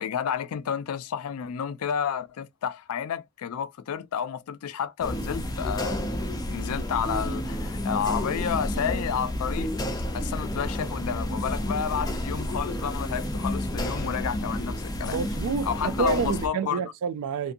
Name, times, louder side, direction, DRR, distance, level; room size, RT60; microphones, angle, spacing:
voice 1, 0.0-6.0 6.5-9.7 10.1-15.2 15.6-16.9, left 8 dB, 80° left, 0.4 m, -31 dB
sound 1, 5.0-16.5, left 1 dB, 15° left, 0.5 m, -30 dB
voice 2, 15.1-17.5, right 5 dB, 80° right, 0.3 m, -28 dB
2.6 x 2.6 x 2.5 m
head